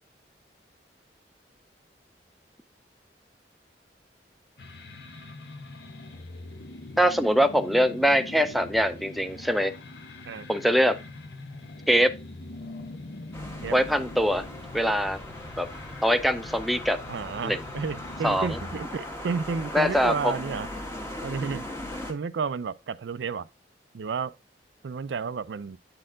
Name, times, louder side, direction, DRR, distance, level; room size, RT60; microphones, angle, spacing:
sound 1, 4.6-18.8, left 2 dB, 65° left, 0.9 m, -42 dB
voice 1, 7.0-9.7 10.5-11.0 11.9-12.1 13.7-14.5 14.7-15.2 15.6-15.7 16.0-17.0 17.4-17.6 18.2-18.6 19.7-20.3, equal, ahead, 0.5 m, -23 dB
sound 2, 13.3-22.1, left 1 dB, 15° left, 1.2 m, -39 dB
voice 2, 17.1-20.7 21.2-21.6 22.1-23.5 23.9-24.3 24.8-25.8, right 5 dB, 85° right, 0.4 m, -31 dB
8.6 x 4.3 x 3.8 m
head